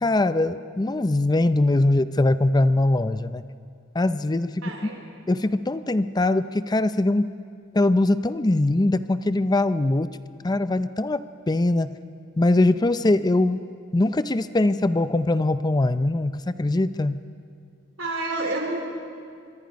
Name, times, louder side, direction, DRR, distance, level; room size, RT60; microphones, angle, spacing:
voice 1, 0.0-3.4 3.9-4.7 5.3-7.3 7.7-10.2 10.4-12.0 12.4-13.6 13.9-17.2, left 2 dB, 20° left, 13 dB, 0.5 m, -22 dB
voice 2, 4.6-5.0 18.0-18.8, right 2 dB, 85° right, 1 dB, 4.1 m, -29 dB
25.0 x 23.5 x 5.3 m, 2.3 s
head